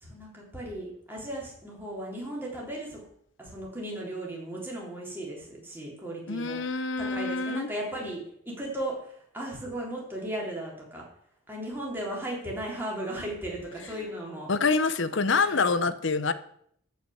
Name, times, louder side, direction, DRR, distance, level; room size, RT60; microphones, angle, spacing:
voice 1, 0.0-3.0 3.4-8.2 8.5-11.0 11.5-14.5 15.3-15.8, right 1 dB, 10° right, -3 dB, 3.6 m, -36 dB
voice 2, 6.3-7.7 14.5-16.3, left 4 dB, 65° left, 13 dB, 0.8 m, -26 dB
14.0 x 5.8 x 7.1 m, 0.67 s
head